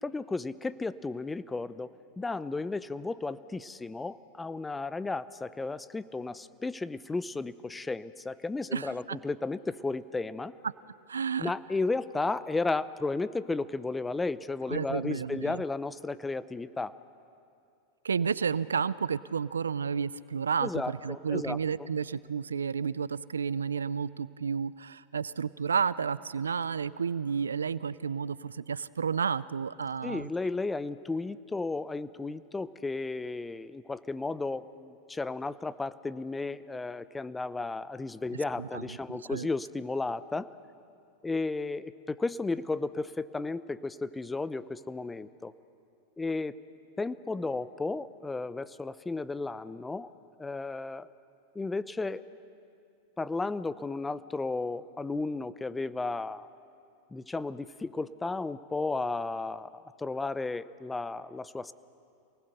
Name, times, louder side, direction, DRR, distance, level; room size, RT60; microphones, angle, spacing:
voice 1, 0.0-10.5 11.4-16.9 20.6-21.6 30.0-40.5 41.2-45.5 46.2-46.6 47.0-50.1 50.4-51.1 51.5-52.2 53.2-56.5 57.1-59.7 60.0-61.7, left 3 dB, 10° left, 16 dB, 0.7 m, -34 dB
voice 2, 8.7-9.2 10.6-10.7 11.1-11.5 14.7-15.6 18.0-30.3 38.6-38.8 39.1-39.5, right 6 dB, 90° right, 19 dB, 0.4 m, -31 dB
27.5 x 19.5 x 6.7 m, 2.5 s
hypercardioid pair, 95°, 0 cm